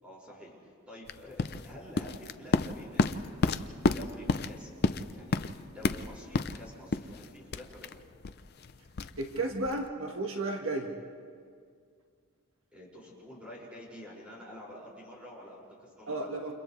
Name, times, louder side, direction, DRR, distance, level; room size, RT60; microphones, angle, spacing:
voice 1, 0.0-4.7 5.1-8.1 12.7-16.3, left 1 dB, 5° right, -5 dB, 5.7 m, -49 dB
sound 1, 1.1-9.9, left 3 dB, 50° left, 0.6 m, -31 dB
voice 2, 9.2-10.9 16.1-16.5, right 2 dB, 70° right, 1 dB, 1.6 m, -33 dB
30.0 x 28.5 x 3.3 m, 2.2 s
head